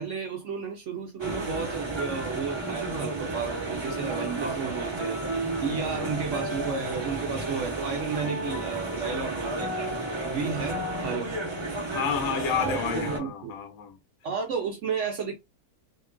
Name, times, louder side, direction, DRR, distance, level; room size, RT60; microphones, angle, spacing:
voice 1, 0.0-5.2 5.6-9.9 10.2-11.4 12.6-13.5 14.2-15.4, right 5 dB, 65° right, 0.7 m, -33 dB
sound 1, 1.2-13.2, right 2 dB, 25° right, 0.6 m, -32 dB
voice 2, 11.9-14.0, left 6 dB, 60° left, 1.0 m, -30 dB
2.9 x 2.3 x 2.2 m
omnidirectional pair, 1.8 m